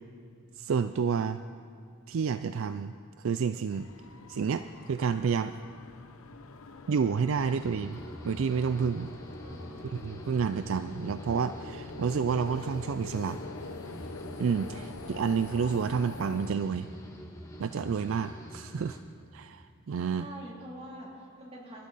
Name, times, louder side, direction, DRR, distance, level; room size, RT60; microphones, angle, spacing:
voice 1, 0.6-1.4 2.1-3.9 4.3-5.6 6.9-9.1 9.9-13.4 14.4-16.9 17.6-19.0 19.3-20.3, right 6 dB, 60° right, 11 dB, 0.4 m, -30 dB
sound 1, 3.7-16.5, left 3 dB, 70° left, 0.8 m, -45 dB
sound 2, 7.4-19.0, equal, 15° left, 1.5 m, -45 dB
voice 2, 9.4-9.9 20.2-21.9, right 1 dB, 30° right, -3 dB, 3.0 m, -45 dB
27.5 x 13.0 x 4.1 m, 2.3 s
head